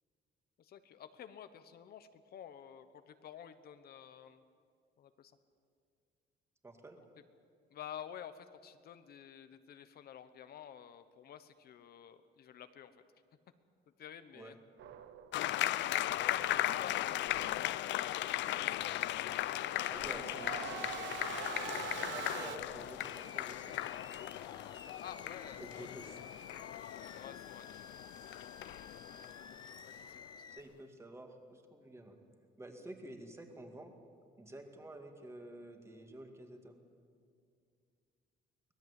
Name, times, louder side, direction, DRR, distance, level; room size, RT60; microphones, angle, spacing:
voice 1, 0.6-4.4 5.0-5.3 7.7-12.9 14.0-14.5 16.2-17.9 25.0-25.9 27.1-27.7 29.8-30.4, left 9 dB, 55° left, 10 dB, 1.0 m, -51 dB
voice 2, 6.6-7.0 14.3-14.6 19.9-20.9 22.1-23.9 25.6-26.2 30.5-32.2 32.6-33.9 34.4-36.8, right 1 dB, 15° right, 4 dB, 2.2 m, -50 dB
sound 1, 14.8-15.7 19.4-22.6, right 8 dB, 80° right, 1.3 m, -44 dB
sound 2, 15.3-30.3, left 14 dB, 75° left, 0.6 m, -37 dB
Animal, 22.6-30.6, left 5 dB, 20° left, 0.8 m, -53 dB
24.5 x 18.5 x 8.3 m, 2.3 s
cardioid pair, 160°, 19 cm